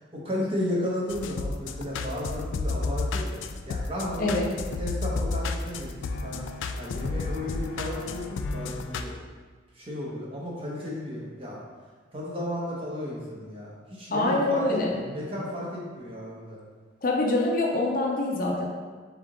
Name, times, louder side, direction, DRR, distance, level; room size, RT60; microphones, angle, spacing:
voice 1, 0.1-4.5 4.8-6.4 6.8-9.1 9.7-11.6 12.1-16.6, left 1 dB, 30° right, -5 dB, 1.0 m, -33 dB
sound 1, 1.1-9.0, left 3 dB, 90° left, 0.3 m, -32 dB
voice 2, 14.1-14.9 17.0-18.7, left 2 dB, 50° left, -2 dB, 0.6 m, -25 dB
3.8 x 3.6 x 3.6 m, 1.5 s
head